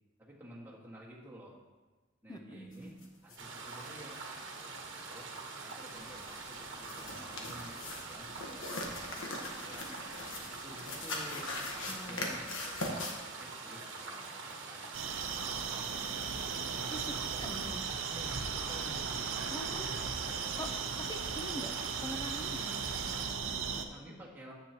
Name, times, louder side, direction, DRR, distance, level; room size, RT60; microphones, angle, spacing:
voice 1, 0.2-1.6 2.2-2.9 3.2-4.2 4.9-5.3 5.6-9.9 10.5-11.6 12.0-14.9 15.4-17.7 18.1-19.0 23.9-24.5, equal, 10° right, -6 dB, 1.7 m, -52 dB
voice 2, 2.3-2.9 11.9-12.3 16.9-17.1 17.4-17.8 19.5-20.0 20.6-21.7 22.0-23.9, equal, 20° left, 4 dB, 0.6 m, -44 dB
sound 1, 3.0-3.1 3.3-3.4 3.7-3.8 5.9-13.1, left 2 dB, 80° left, 1.3 m, -41 dB
sound 2, 3.4-23.3, right 3 dB, 65° right, 1.2 m, -44 dB
sound 3, 14.9-23.8, right 6 dB, 85° right, 0.7 m, -37 dB
9.6 x 8.0 x 2.9 m, 1.3 s
head